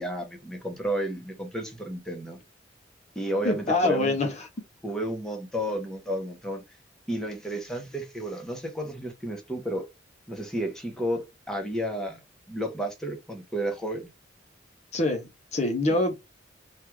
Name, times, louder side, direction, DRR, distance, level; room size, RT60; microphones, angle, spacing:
voice 1, 0.0-2.4 3.2-4.2 4.8-6.6 7.1-9.9 10.3-12.2 12.5-14.1, right 1 dB, 5° left, 0.8 m, -32 dB
voice 2, 3.4-4.5 14.9-16.1, left 2 dB, 35° left, 0.6 m, -25 dB
3.2 x 2.3 x 3.1 m
head